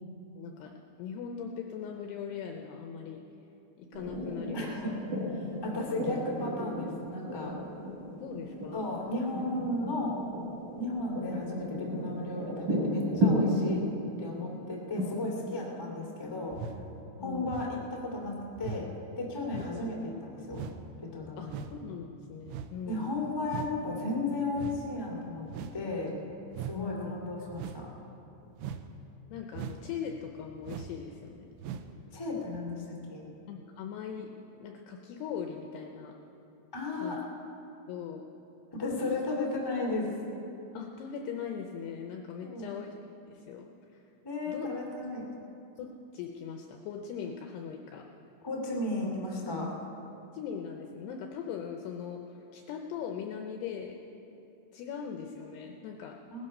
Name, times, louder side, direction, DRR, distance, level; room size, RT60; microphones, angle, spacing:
voice 1, 0.3-3.2 3.8-5.0 5.7-6.1 8.2-8.8 15.1-15.2 17.2-17.5 19.5-19.7 21.4-23.1 26.7-27.1 29.3-31.5 33.5-34.3 34.6-36.2 37.0-37.2 37.9-38.2 40.7-42.9 43.3-43.7 44.5-44.7 45.8-48.1 50.3-53.9 54.7-56.2, left 7 dB, 80° left, 3 dB, 2.4 m, -40 dB
sound 1, 3.9-17.0, equal, 45° right, 5.0 m, -34 dB
voice 2, 4.5-5.0 5.3-7.5 8.7-10.2 10.8-13.8 14.2-16.6 17.2-18.9 19.2-20.6 21.0-21.5 22.9-26.1 26.6-27.9 32.1-33.2 36.7-37.2 38.7-40.1 42.4-42.7 44.2-45.3 48.4-49.7 56.3-56.5, left 2 dB, 30° left, -3 dB, 0.4 m, -34 dB
sound 2, 16.5-16.8 17.5-17.8 18.5-18.8 19.5-19.8 20.5-20.8 21.5-21.8 22.5-22.8 23.5-23.8 24.5-24.8 25.5-25.8 26.5-26.8 27.5-27.9 28.6-28.9 29.5-29.9 30.6-31.0 31.6-31.9 32.5-32.6, right 7 dB, 80° right, 2.5 m, -40 dB
18.5 x 13.5 x 5.4 m, 2.8 s
omnidirectional pair, 5.6 m